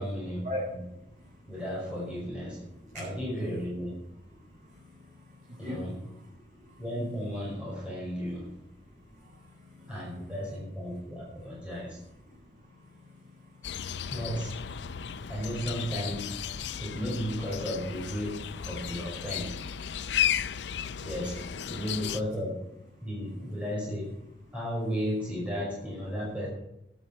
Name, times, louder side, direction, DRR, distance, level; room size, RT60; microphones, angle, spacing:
voice 1, 0.0-0.8 1.5-2.6 2.9-4.0 5.6-6.0 6.8-8.5 9.9-12.0 14.1-14.6 15.3-16.4 16.8-19.5 21.0-22.6 23.0-24.1 24.5-26.5, equal, 5° right, -5 dB, 5.5 m, -34 dB
voice 2, 0.9-1.5 2.7-3.0 4.3-5.9 6.2-6.8 9.0-10.3 11.3-11.6 12.2-14.1 20.1-21.1 24.5-24.6, left 1 dB, 45° right, -7 dB, 6.9 m, -44 dB
sound 1, 13.6-22.2, left 9 dB, 80° left, 0.5 m, -34 dB
13.5 x 11.5 x 5.8 m, 0.83 s
head